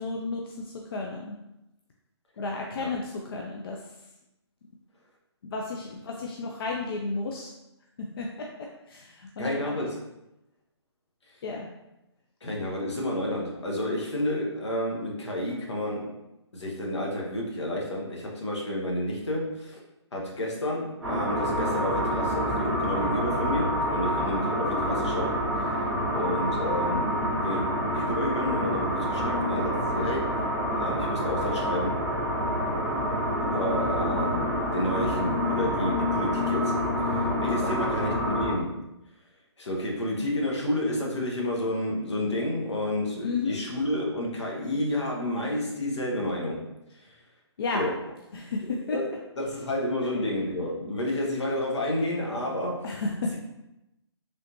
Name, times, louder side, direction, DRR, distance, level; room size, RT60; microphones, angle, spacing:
voice 1, 0.0-1.4 2.4-3.8 5.5-7.5 8.2-8.5 8.9-9.6 11.4-11.7 37.6-37.9 43.2-43.6 47.6-47.8 48.3-49.0 52.8-53.3, left 3 dB, 55° left, 0 dB, 0.4 m, -32 dB
voice 2, 9.4-10.0 12.4-16.1 16.5-19.8 20.1-25.8 26.1-27.2 27.4-27.6 27.9-30.5 30.8-32.0 33.4-38.8 39.6-46.7 46.9-47.2 47.7-48.0 48.9-53.0, left 1 dB, 75° left, -2 dB, 1.0 m, -30 dB
sound 1, 21.0-38.5, equal, 5° right, 0.6 m, -27 dB
3.4 x 2.9 x 2.5 m, 0.91 s
hypercardioid pair, 150°, 15 cm